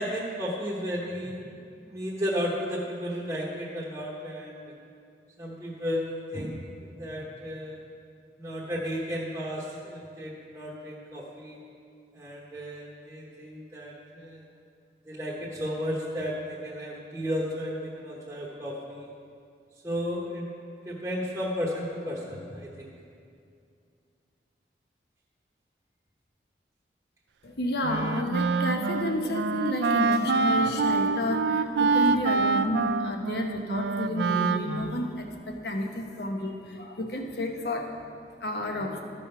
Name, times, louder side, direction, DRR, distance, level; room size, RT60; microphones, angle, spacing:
voice 1, 0.0-1.5 1.8-4.7 5.4-6.6 6.9-7.8 8.4-11.6 12.1-14.4 15.0-19.1 19.8-20.5 20.8-22.9, equal, 20° right, -6 dB, 1.1 m, -33 dB
voice 2, 27.4-39.0, left 1 dB, 70° left, 3 dB, 1.0 m, -31 dB
Wind instrument woodwind instrument, 27.8-35.2, right 4 dB, 80° right, 0.4 m, -26 dB
13.5 x 5.3 x 5.7 m, 2.4 s
head